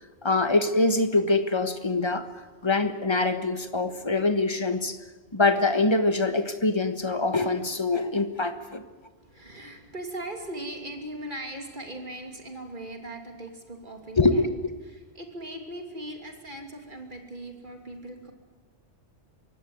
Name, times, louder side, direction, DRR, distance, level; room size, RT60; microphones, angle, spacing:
voice 1, 0.2-2.3 2.6-5.0 5.3-8.8 14.2-14.5, left 3 dB, 25° left, 10 dB, 1.4 m, -24 dB
voice 2, 9.2-14.6 14.9-18.3, right 1 dB, 45° right, 5 dB, 3.1 m, -39 dB
23.5 x 17.0 x 9.4 m, 1.3 s
omnidirectional pair, 1.2 m